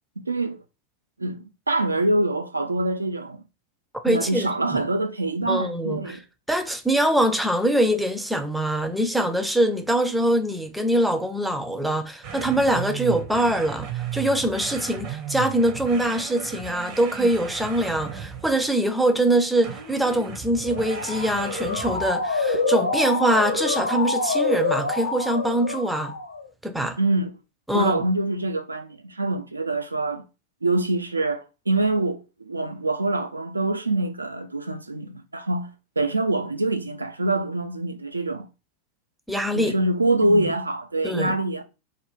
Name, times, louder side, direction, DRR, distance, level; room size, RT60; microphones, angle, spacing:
voice 1, 0.2-0.6 1.2-3.4 4.1-6.2 27.0-27.4 27.7-30.2 30.6-35.7 36.0-38.5 39.5-41.6, right 2 dB, 80° right, 0.3 m, -25 dB
voice 2, 4.0-4.8 5.5-6.2 6.5-26.1 26.6-27.0 27.7-28.0 39.3-39.7 40.3-40.5 41.0-41.3, right 1 dB, 5° right, 0.4 m, -23 dB
sound 1, 12.2-18.7 19.6-22.2, right 8 dB, 40° right, 0.6 m, -35 dB
Motor vehicle (road) / Siren, 20.6-26.4, left 3 dB, 85° left, 0.4 m, -26 dB
2.5 x 2.2 x 3.2 m
figure-of-eight pair, 90°, 0 cm